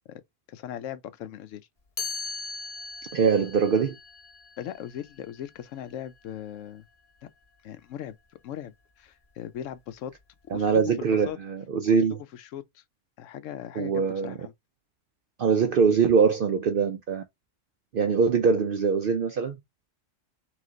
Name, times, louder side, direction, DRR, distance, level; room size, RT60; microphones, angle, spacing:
voice 1, 0.5-1.6 4.6-6.8 7.2-7.3 7.6-8.2 8.4-10.1 10.5-11.4 11.9-12.8 13.2-14.5, left 10 dB, 75° left, 0.9 m, -39 dB
Chime, 2.0-7.8, left 4 dB, 30° left, 1.1 m, -41 dB
voice 2, 3.1-4.0 10.5-12.2 13.8-14.3 15.4-17.2 17.9-19.6, right 6 dB, 60° right, 0.6 m, -23 dB
3.3 x 3.1 x 3.7 m
omnidirectional pair, 1.3 m